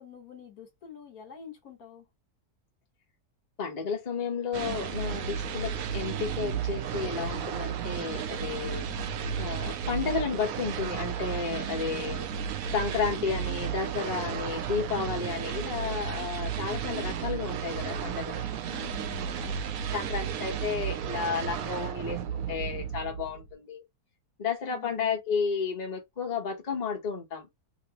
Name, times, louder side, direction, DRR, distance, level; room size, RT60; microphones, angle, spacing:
voice 1, 0.0-2.1 8.7-9.1 12.7-13.1 18.7-19.7 24.7-25.2, left 8 dB, 70° left, 1.7 m, -48 dB
voice 2, 3.6-8.9 9.4-12.3 12.7-18.5 19.5-23.8 24.4-27.5, left 5 dB, 30° left, 1.0 m, -32 dB
sound 1, 4.5-23.5, right 8 dB, 70° right, 1.0 m, -33 dB
3.1 x 3.0 x 2.9 m
omnidirectional pair, 1.6 m